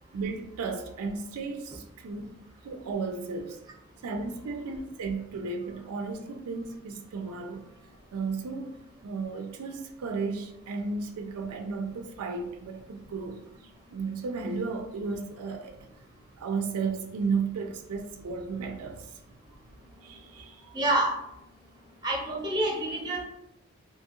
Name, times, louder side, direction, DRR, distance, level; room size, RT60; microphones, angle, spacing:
voice 1, 0.1-3.6 4.0-7.7 8.1-8.7 9.0-15.9 16.4-19.2 20.0-20.8, right 4 dB, 90° right, 0.4 m, -34 dB
voice 2, 20.7-21.1 22.0-23.2, right 1 dB, 20° right, 0.6 m, -27 dB
2.8 x 2.3 x 2.9 m
head